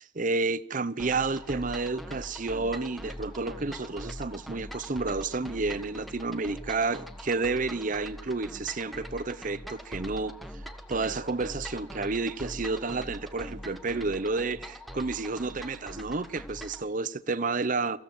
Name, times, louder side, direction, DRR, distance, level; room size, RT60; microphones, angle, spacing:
voice 1, 0.0-10.4 10.9-18.0, right 3 dB, 40° right, 0.7 m, -30 dB
sound 1, 1.0-16.9, equal, ahead, 1.3 m, -42 dB
27.0 x 15.5 x 7.6 m
head